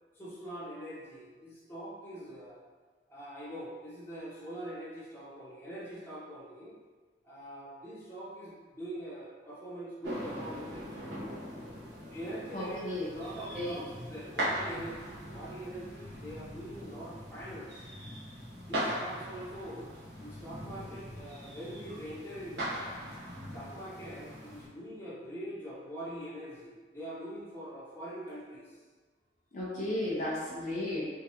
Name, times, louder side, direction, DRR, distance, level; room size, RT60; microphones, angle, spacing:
voice 1, 0.1-2.6 3.1-6.7 7.2-11.2 12.1-17.9 18.7-19.9 20.2-22.9 23.5-28.8, right 1 dB, 15° left, -10 dB, 1.2 m, -43 dB
sound 1, 10.0-24.7, equal, 70° right, 1.3 m, -40 dB
voice 2, 12.5-13.1 13.5-13.7 29.5-31.1, left 1 dB, 45° left, -8 dB, 0.8 m, -34 dB
3.6 x 3.5 x 3.0 m, 1.4 s
head